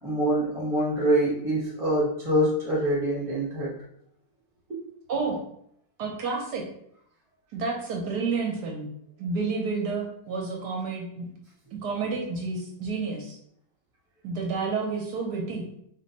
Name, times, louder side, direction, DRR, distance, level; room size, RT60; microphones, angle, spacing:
voice 1, 0.0-3.7, right 1 dB, 5° right, -7 dB, 0.5 m, -25 dB
voice 2, 6.0-6.6 7.5-8.9 9.2-11.3 11.7-13.4 14.2-15.6, right 4 dB, 70° right, 0 dB, 1.1 m, -30 dB
3.1 x 2.2 x 3.9 m, 0.70 s
omnidirectional pair, 2.0 m